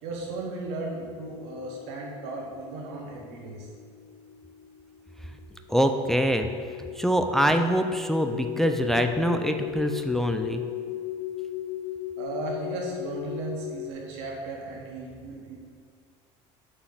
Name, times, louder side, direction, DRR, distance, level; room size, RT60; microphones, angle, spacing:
voice 1, 0.0-3.7 12.2-15.6, right 2 dB, 85° right, -1 dB, 1.4 m, -36 dB
sound 1, 0.8-13.9, left 12 dB, 70° left, 0.5 m, -37 dB
voice 2, 5.7-6.5 7.0-10.6, equal, 5° left, 6 dB, 0.3 m, -24 dB
8.3 x 3.0 x 5.6 m, 2.1 s
cardioid pair, 125°, 14 cm